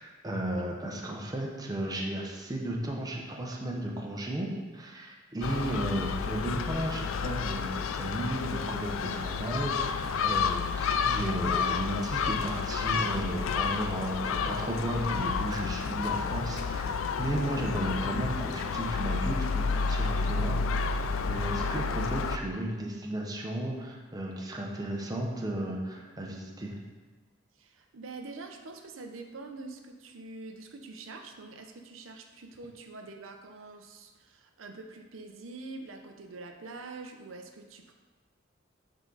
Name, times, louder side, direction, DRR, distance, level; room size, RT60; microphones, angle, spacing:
voice 1, 0.0-21.0 21.2-26.7, right 1 dB, 20° right, -1 dB, 0.8 m, -34 dB
Gull seagull, 5.4-22.4, left 5 dB, 85° left, 0.4 m, -30 dB
voice 2, 27.6-37.9, right 3 dB, 80° right, 4 dB, 0.7 m, -45 dB
8.2 x 3.9 x 3.9 m, 1.3 s
head